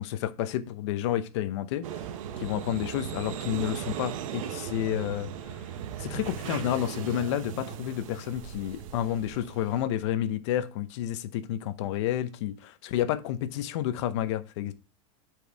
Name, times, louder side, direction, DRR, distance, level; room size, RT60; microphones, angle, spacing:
voice 1, 0.0-1.9 2.4-5.3 6.0-14.7, left 12 dB, 55° left, 0.8 m, -30 dB
sound 1, 1.8-9.8, right 9 dB, 70° right, 0.9 m, -37 dB
8.3 x 4.7 x 3.5 m
supercardioid pair, 170°, 18 cm